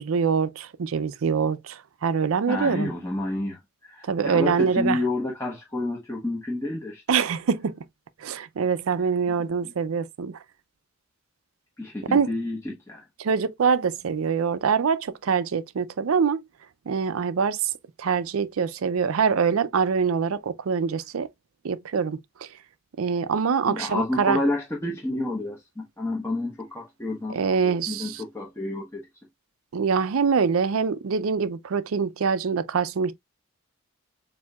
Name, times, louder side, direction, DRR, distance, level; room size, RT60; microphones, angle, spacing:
voice 1, 0.0-2.9 4.1-5.0 7.1-7.7 8.2-10.4 12.1-12.3 13.2-16.4 16.9-17.7 18.0-21.3 21.6-22.5 23.0-24.4 27.3-28.2 29.7-33.1, right 6 dB, 85° right, 0.5 m, -24 dB
voice 2, 2.5-7.0 9.6-9.7 11.8-13.0 23.7-29.1, left 2 dB, 15° left, 1.0 m, -30 dB
7.1 x 2.7 x 2.3 m
head